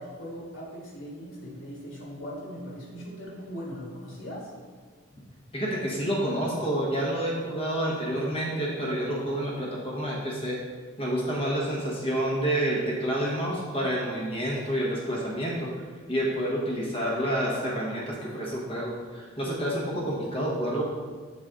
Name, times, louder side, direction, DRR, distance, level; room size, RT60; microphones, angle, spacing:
voice 1, 0.0-4.5, equal, 75° left, -4 dB, 1.6 m, -39 dB
voice 2, 5.5-10.6 11.0-15.7 16.1-20.8, right 1 dB, 30° left, -4 dB, 1.2 m, -29 dB
6.6 x 4.0 x 3.7 m, 1.5 s
head